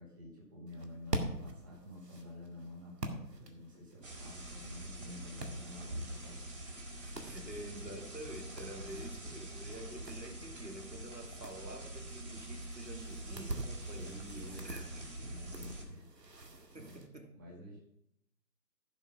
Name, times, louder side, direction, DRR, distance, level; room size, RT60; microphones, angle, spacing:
voice 1, 0.0-6.7 7.1-7.6 8.7-9.4 13.9-16.1 16.4-17.0 17.3-17.8, left 1 dB, 15° right, -4 dB, 1.9 m, -51 dB
sound 1, 0.7-17.1, right 1 dB, 70° right, 2.2 m, -46 dB
sound 2, 4.0-15.8, right 1 dB, 45° right, 4.8 m, -45 dB
voice 2, 7.0-14.1 14.6-15.4 16.7-17.3, right 1 dB, 85° right, 4 dB, 2.7 m, -48 dB
15.0 x 5.4 x 6.1 m, 0.75 s
figure-of-eight pair, 160°, 50 cm